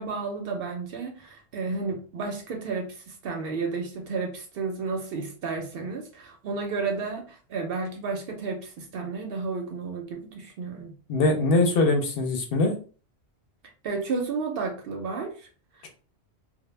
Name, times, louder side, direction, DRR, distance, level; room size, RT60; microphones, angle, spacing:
voice 1, 0.0-10.9 13.8-15.5 15.8-15.9, right 4 dB, 65° right, 2 dB, 0.7 m, -32 dB
voice 2, 11.1-12.7 15.8-15.9, left 2 dB, 65° left, 3 dB, 0.7 m, -22 dB
2.1 x 2.0 x 3.1 m, 0.38 s
omnidirectional pair, 1.1 m